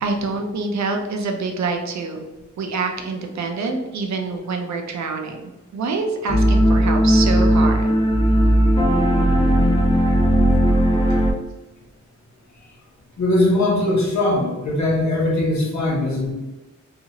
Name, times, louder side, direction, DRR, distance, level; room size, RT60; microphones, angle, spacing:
voice 1, 0.0-2.2 2.6-5.4 5.7-7.9, right 4 dB, 65° right, 3 dB, 0.5 m, -26 dB
sound 1, 6.3-11.3, equal, 20° left, 0.3 m, -16 dB
voice 2, 13.2-16.3, left 1 dB, 65° left, -3 dB, 0.9 m, -20 dB
2.8 x 2.4 x 2.8 m, 1.1 s
wide cardioid pair, 170°, 30 cm